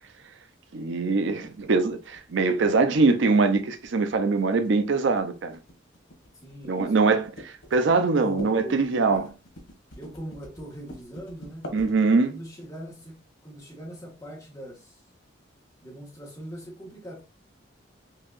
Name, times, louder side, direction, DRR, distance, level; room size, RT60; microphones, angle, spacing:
voice 1, 0.7-5.6 6.6-9.3 11.7-12.4, right 3 dB, 70° right, 0.5 m, -23 dB
sound 1, 1.4-12.5, left 1 dB, 85° left, 1.5 m, -45 dB
voice 2, 6.4-7.0 7.8-9.3 10.0-11.6 12.3-15.0 15.8-17.2, right 1 dB, 15° left, 1.2 m, -41 dB
4.6 x 2.8 x 2.4 m
head